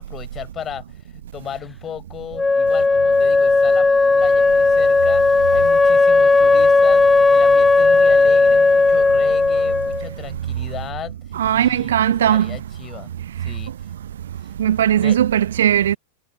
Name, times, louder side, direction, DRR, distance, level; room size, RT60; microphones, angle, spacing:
voice 1, 0.0-3.9 4.1-5.2 5.5-13.1 13.4-13.7 15.0-15.2, left 9 dB, 25° left, 4.6 m, -36 dB
Wind instrument woodwind instrument, 2.4-10.1, left 3 dB, 10° left, 0.4 m, -15 dB
voice 2, 11.4-12.5 14.6-16.0, right 10 dB, 60° right, 0.4 m, -17 dB
figure-of-eight pair, 90°, 0 cm